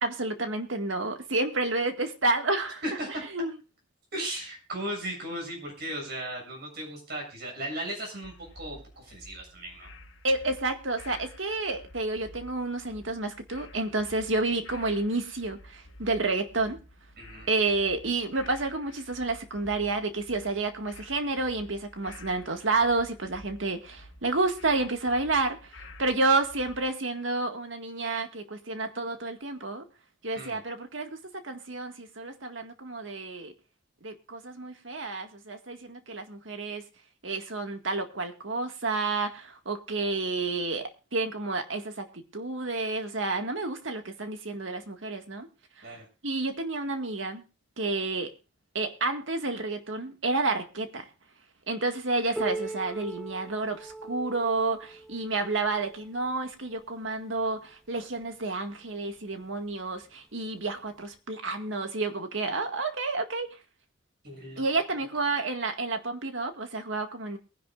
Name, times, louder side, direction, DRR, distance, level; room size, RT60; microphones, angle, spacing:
voice 1, 0.0-2.8 3.3-3.6 10.2-16.8 17.5-29.9 30.2-33.5 34.0-36.8 37.2-45.5 46.2-47.4 47.8-48.3 48.7-51.1 51.7-63.5 64.6-67.4, right 3 dB, 90° right, 6 dB, 1.9 m, -30 dB
voice 2, 2.8-3.2 4.1-9.9 17.2-17.5 30.3-30.6 45.8-46.1 64.2-65.0 65.3-65.4, right 1 dB, 60° right, 1 dB, 7.5 m, -37 dB
sound 1, 8.2-26.9, left 1 dB, 85° left, 1.6 m, -50 dB
Piano, 52.4-57.7 58.5-58.6 59.1-59.2 60.0-60.1 61.1-61.2, right 2 dB, ahead, 0.5 m, -40 dB
22.5 x 10.5 x 2.5 m, 0.30 s
head